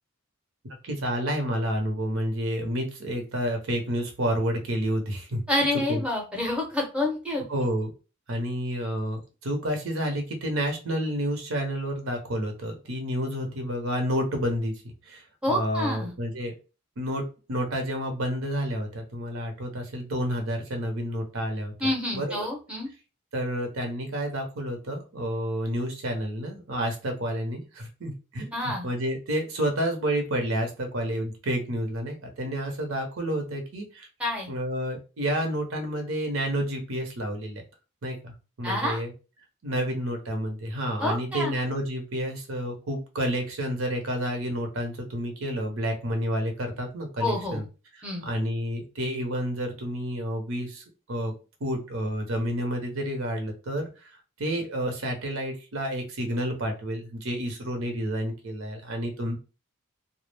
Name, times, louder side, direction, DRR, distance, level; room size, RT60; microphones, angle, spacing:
voice 1, 0.8-5.4 5.9-6.0 7.5-7.9 8.3-14.7 15.1-16.5 17.0-21.7 22.1-22.5 23.3-34.1 34.5-37.6 38.0-39.1 39.6-47.6 48.3-51.3 51.6-54.1 54.4-59.4, equal, 75° right, 3 dB, 0.8 m, -30 dB
voice 2, 5.5-7.7 15.4-16.1 21.8-22.9 28.5-28.9 34.2-34.5 38.6-39.0 41.0-41.6 47.2-47.6 48.0-48.2, left 1 dB, 5° right, -1 dB, 0.6 m, -28 dB
2.3 x 2.0 x 3.2 m, 0.32 s
head